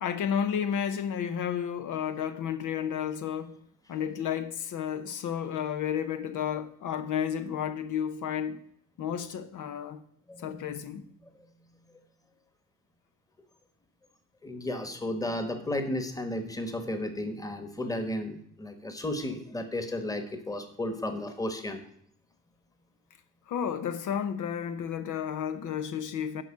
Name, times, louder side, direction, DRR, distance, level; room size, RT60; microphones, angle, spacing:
voice 1, 0.0-3.6 3.9-8.6 9.0-10.0 10.4-11.1 23.5-26.4, left 8 dB, 70° left, 0.8 m, -32 dB
voice 2, 10.3-10.8 14.4-21.9, left 1 dB, 10° left, 1.3 m, -34 dB
11.0 x 4.7 x 7.1 m
cardioid pair, 155°, 32 cm